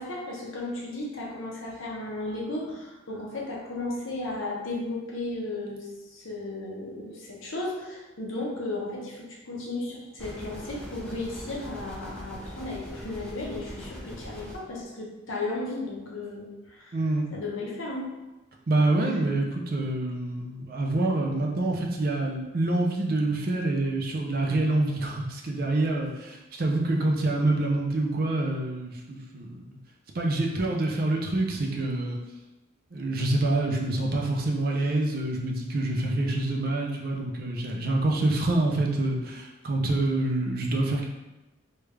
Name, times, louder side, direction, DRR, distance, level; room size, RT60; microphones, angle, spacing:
voice 1, 0.0-17.0 17.3-18.2 19.0-19.2, left 2 dB, 85° left, -3 dB, 0.8 m, -35 dB
sound 1, 10.2-14.6, equal, 5° left, 0.5 m, -41 dB
voice 2, 16.9-17.3 18.7-29.8 30.1-32.2 32.9-41.1, right 2 dB, 50° right, 0 dB, 0.5 m, -26 dB
3.2 x 2.4 x 3.2 m, 1.0 s
head